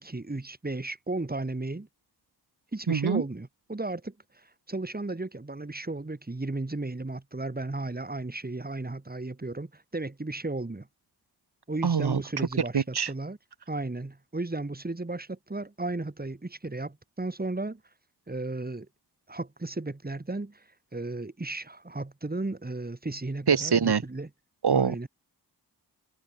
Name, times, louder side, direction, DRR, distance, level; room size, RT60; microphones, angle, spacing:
voice 1, 0.0-1.9 2.7-10.9 11.7-13.4 13.7-17.8 18.3-18.9 19.3-20.6 20.9-24.3 24.7-25.1, right 2 dB, 25° right, 3.4 m, -34 dB
voice 2, 2.9-3.2 11.8-12.2 12.7-13.1 23.5-24.0 24.6-25.1, right 6 dB, 75° right, 3.0 m, -24 dB
cardioid pair, 60°, 40 cm